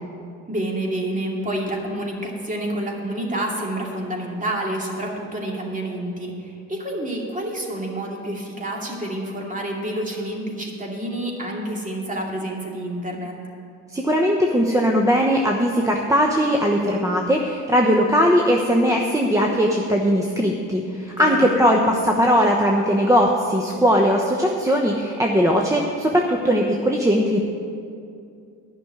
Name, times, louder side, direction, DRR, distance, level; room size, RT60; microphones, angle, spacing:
voice 1, 0.5-13.4 21.1-21.5, right 1 dB, 25° right, -1 dB, 2.5 m, -28 dB
voice 2, 13.9-27.4, equal, 10° right, 0 dB, 1.0 m, -19 dB
11.0 x 6.3 x 9.2 m, 2.4 s
cardioid pair, 90°, 30 cm